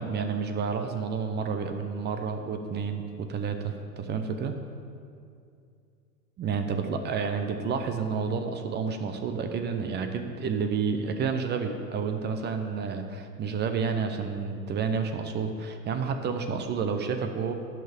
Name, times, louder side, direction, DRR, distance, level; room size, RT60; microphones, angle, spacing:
voice 1, 0.0-4.6 6.4-17.5, right 5 dB, 20° right, 6 dB, 0.7 m, -30 dB
10.5 x 5.9 x 7.3 m, 2.5 s
hypercardioid pair, 105°, 50 cm